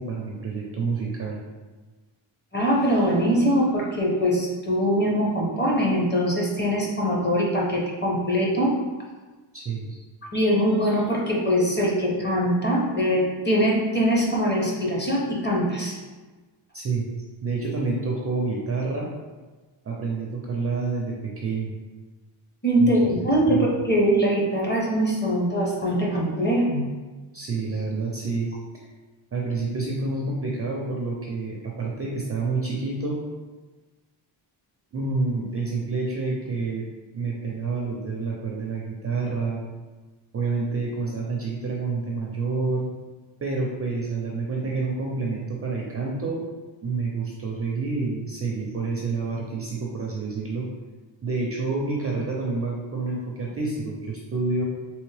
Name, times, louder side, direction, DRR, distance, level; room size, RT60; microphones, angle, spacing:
voice 1, 0.0-1.4 9.5-10.0 16.7-17.1 17.4-19.1 19.8-21.7 22.8-22.9 23.5-23.7 27.3-28.9 29.3-33.2 34.9-36.9 37.1-39.6 40.3-42.9 43.4-46.5 46.8-50.7 51.2-54.6, right 3 dB, 30° right, -2 dB, 0.4 m, -28 dB
voice 2, 2.5-8.7 10.3-16.0 22.6-26.9, equal, 20° left, -3 dB, 0.7 m, -22 dB
3.5 x 3.0 x 3.3 m, 1.3 s
wide cardioid pair, 150°, 48 cm